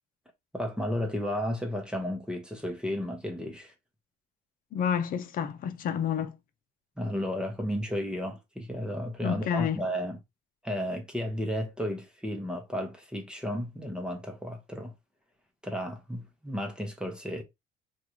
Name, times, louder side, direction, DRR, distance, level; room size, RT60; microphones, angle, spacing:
voice 1, 0.5-3.7 7.0-10.2 10.6-14.9 15.6-17.4, equal, 5° right, 0.9 m, -33 dB
voice 2, 4.7-6.3 9.2-9.8, left 8 dB, 55° left, 0.7 m, -29 dB
3.6 x 2.5 x 3.1 m
cardioid pair, 110°, 17 cm